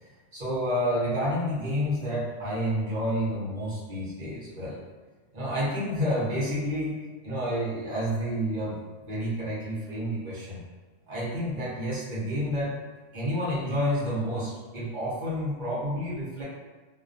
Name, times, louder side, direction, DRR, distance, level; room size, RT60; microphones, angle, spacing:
voice 1, 0.0-4.8 5.3-10.6 11.1-12.8 13.1-16.4, equal, 45° right, -7 dB, 0.7 m, -29 dB
2.3 x 2.2 x 2.5 m, 1.4 s
omnidirectional pair, 1.3 m